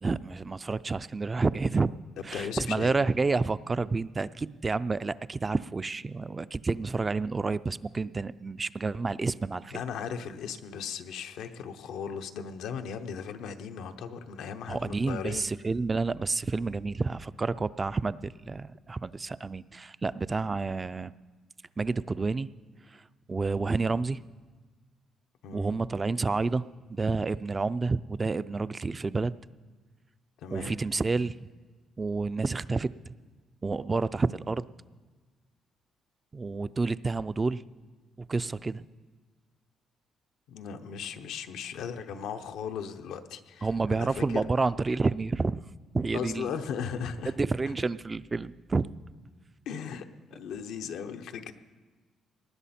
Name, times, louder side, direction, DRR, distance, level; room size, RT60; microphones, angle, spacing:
voice 1, 0.0-1.9 2.2-9.8 14.7-21.1 21.8-22.5 22.9-23.0 23.3-24.2 25.5-29.3 30.5-31.5 32.0-32.9 33.6-34.6 36.3-37.6 38.3-38.9 43.6-45.6 45.9-46.5 47.4-48.9, right 3 dB, 25° right, 16 dB, 0.3 m, -29 dB
voice 2, 2.3-3.1 9.7-15.5 25.4-25.8 30.4-30.8 40.5-44.4 46.1-47.3 49.7-50.0 50.3-51.5, left 7 dB, 85° left, 7 dB, 0.7 m, -37 dB
19.0 x 10.5 x 4.3 m, 1.4 s
cardioid pair, 90°, 0 cm